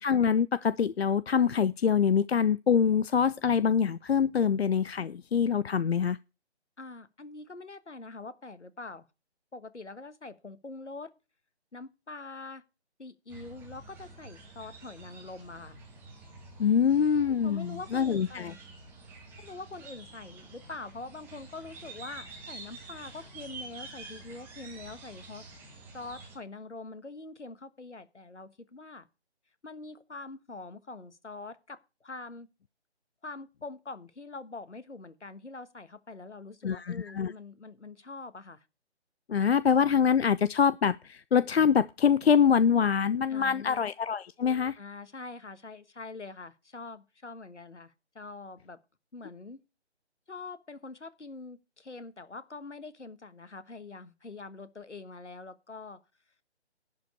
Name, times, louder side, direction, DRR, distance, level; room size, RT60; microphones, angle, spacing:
voice 1, 0.0-6.2 16.6-18.5 36.6-37.3 39.3-44.8, left 7 dB, 65° left, 0.5 m, -25 dB
voice 2, 6.8-9.1 9.5-11.1 11.7-12.6 13.0-15.8 17.4-18.6 19.4-25.5 25.9-29.1 29.6-32.5 33.2-38.6 43.3-43.8 44.8-48.8 49.1-49.6 50.3-56.0, left 3 dB, 85° left, 1.3 m, -44 dB
sound 1, 13.3-26.4, right 3 dB, 5° right, 1.3 m, -48 dB
11.5 x 5.3 x 8.1 m
figure-of-eight pair, 150°, 34 cm